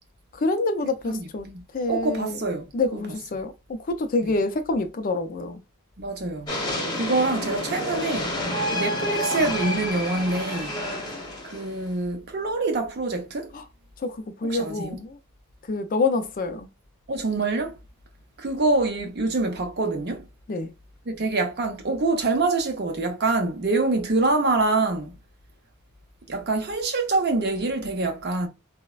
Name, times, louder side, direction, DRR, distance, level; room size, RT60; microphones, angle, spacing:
voice 1, 0.3-1.5 1.7-2.4 2.7-5.6 13.5-13.6 14.0-15.2 15.6-16.7 20.5-20.7, left 3 dB, 40° left, 0.4 m, -27 dB
voice 2, 1.1-1.6 1.9-2.7 6.0-6.6 6.9-8.4 8.7-10.8 11.4-13.5 14.4-15.0 17.1-17.8 18.4-20.3 21.1-25.2 26.3-28.5, right 3 dB, 50° right, 0.6 m, -25 dB
sound 1, 6.5-11.9, left 1 dB, 20° left, 0.9 m, -29 dB
3.9 x 2.1 x 2.3 m
head